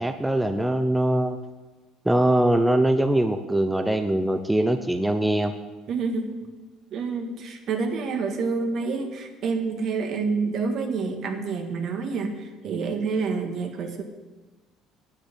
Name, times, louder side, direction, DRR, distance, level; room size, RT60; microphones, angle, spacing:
voice 1, 0.0-1.4 2.1-5.5, right 1 dB, 10° right, 8 dB, 0.7 m, -22 dB
voice 2, 5.9-6.4 6.9-14.0, right 4 dB, 55° right, 5 dB, 1.8 m, -28 dB
9.4 x 7.9 x 8.4 m, 1.2 s
supercardioid pair, 85°, 0 cm